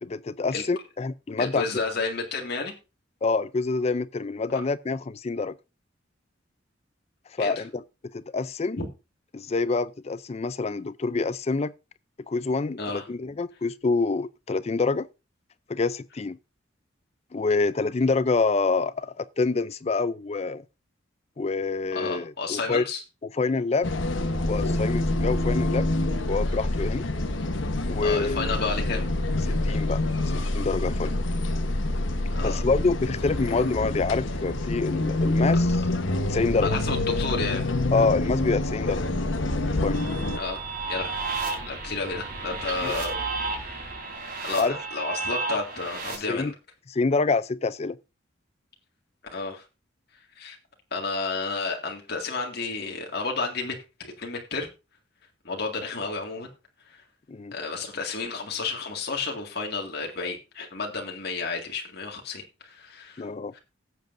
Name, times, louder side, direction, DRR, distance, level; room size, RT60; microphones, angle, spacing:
voice 1, 0.0-1.7 3.2-5.5 7.4-7.8 8.1-8.8 9.3-11.7 12.3-15.1 15.7-16.4 17.3-20.6 21.4-22.8 23.4-23.9 24.4-25.9 26.3-27.0 27.9-28.6 29.5-30.0 30.3-31.1 32.4-35.8 36.3-36.7 37.9-39.0 39.7-40.0 42.8-42.9 44.6-44.8 46.3-46.5 46.9-48.0 57.3-57.5 63.2-63.5, left 3 dB, 35° left, 0.4 m, -26 dB
voice 2, 1.4-2.8 4.5-4.6 7.4-7.5 8.8-8.9 12.8-13.1 21.9-23.0 28.0-29.0 32.4-32.6 36.6-37.7 40.4-41.2 41.7-43.9 44.4-46.5 49.3-49.6 50.4-50.6 50.9-54.7 55.4-56.5 56.9-57.0 57.5-63.3 63.5-63.6, left 4 dB, 55° left, 2.0 m, -31 dB
sound 1, 23.8-40.4, left 2 dB, 80° left, 1.1 m, -26 dB
sound 2, 38.9-43.9, equal, 15° left, 2.9 m, -43 dB
sound 3, 39.9-46.1, right 4 dB, 50° right, 3.8 m, -33 dB
17.0 x 7.8 x 2.6 m
head